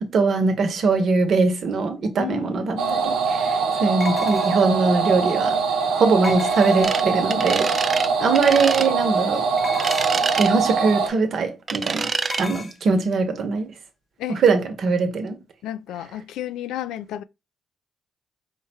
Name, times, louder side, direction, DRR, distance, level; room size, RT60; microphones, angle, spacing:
voice 1, 0.0-5.6 5.9-7.9 8.2-9.5 10.4-12.1 12.4-13.7 14.3-15.4, right 4 dB, 60° right, 0.9 m, -21 dB
voice 2, 2.2-3.0 8.2-8.4 14.2-14.4 15.6-17.2, left 12 dB, 85° left, 0.3 m, -32 dB
sound 1, 2.4-2.5 4.0-4.8 6.2-7.1 9.6-10.3 12.2-12.8, left 3 dB, 25° left, 0.7 m, -35 dB
sound 2, 2.8-11.1, right 5 dB, 90° right, 0.8 m, -23 dB
sound 3, 6.8-7.0 7.3-8.1 8.3-8.9 9.8-10.5 11.7-12.4, right 5 dB, 40° right, 0.3 m, -26 dB
4.8 x 2.2 x 4.2 m
cardioid pair, 90°, 0 cm